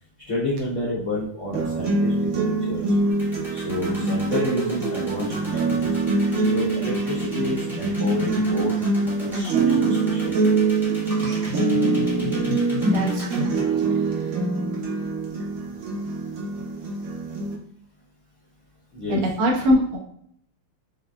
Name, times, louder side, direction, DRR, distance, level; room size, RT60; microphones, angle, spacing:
voice 1, 0.3-3.0 3.5-6.0 6.4-10.6 18.9-19.2, left 1 dB, 75° left, -5 dB, 0.7 m, -30 dB
sound 1, 1.5-17.5, right 3 dB, 60° right, 0.9 m, -24 dB
sound 2, 3.1-13.4, left 1 dB, ahead, 0.5 m, -35 dB
voice 2, 12.5-14.4 19.1-20.0, equal, 80° right, -1 dB, 1.8 m, -24 dB
5.1 x 2.4 x 2.2 m, 0.64 s
omnidirectional pair, 2.4 m